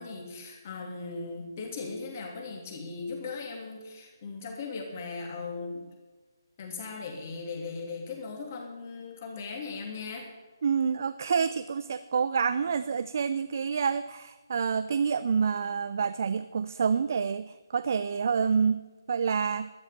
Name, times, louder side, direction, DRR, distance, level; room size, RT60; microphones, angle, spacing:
voice 1, 0.0-5.9 6.6-10.3, left 4 dB, 35° left, 2 dB, 3.0 m, -38 dB
voice 2, 10.6-19.7, right 6 dB, 45° right, 13 dB, 0.4 m, -28 dB
12.5 x 10.5 x 7.1 m, 1.3 s
figure-of-eight pair, 145°, 2 cm